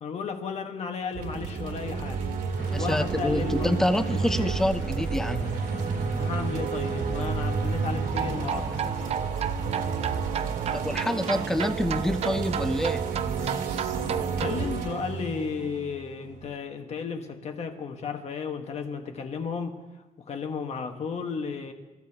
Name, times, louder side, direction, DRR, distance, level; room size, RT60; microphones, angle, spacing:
voice 1, 0.0-2.3 2.7-3.7 4.4-4.5 6.1-8.7 14.4-19.8 20.3-21.7, left 5 dB, 50° left, 4 dB, 1.5 m, -34 dB
sound 1, 1.1-16.5, right 5 dB, 85° right, 2.1 m, -31 dB
sound 2, 2.5-9.1, left 2 dB, 70° left, 5.8 m, -42 dB
voice 2, 2.7-5.6 10.7-13.0, left 1 dB, 5° left, 9 dB, 0.7 m, -27 dB
sound 3, 8.1-14.6, right 8 dB, 45° right, 0.5 m, -32 dB
28.5 x 14.5 x 2.9 m, 1.1 s
wide cardioid pair, 170°, 14 cm